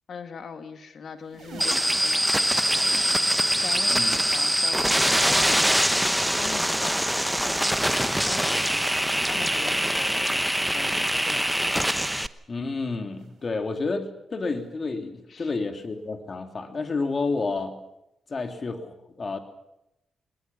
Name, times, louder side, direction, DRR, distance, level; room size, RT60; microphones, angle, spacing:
voice 1, 0.1-5.7 6.3-7.0 8.2-8.9 9.2-10.3 10.6-11.5 15.3-15.5, left 6 dB, 60° left, 8 dB, 2.2 m, -40 dB
sound 1, 1.2-3.6 3.9-4.8 5.2-6.1 6.5-7.4 7.8-8.6 9.1-9.8 10.5-11.0 11.8-12.3 13.1-13.6 14.5-14.8 15.8-16.0 17.1-17.2, right 5 dB, 65° right, 3.5 m, -49 dB
sound 2, 1.6-12.3, equal, 5° right, 1.0 m, -23 dB
voice 2, 3.9-4.2 12.5-17.8 18.3-19.4, left 3 dB, 45° left, 6 dB, 3.1 m, -30 dB
21.5 x 21.0 x 7.2 m, 0.87 s
cardioid pair, 65°, 0 cm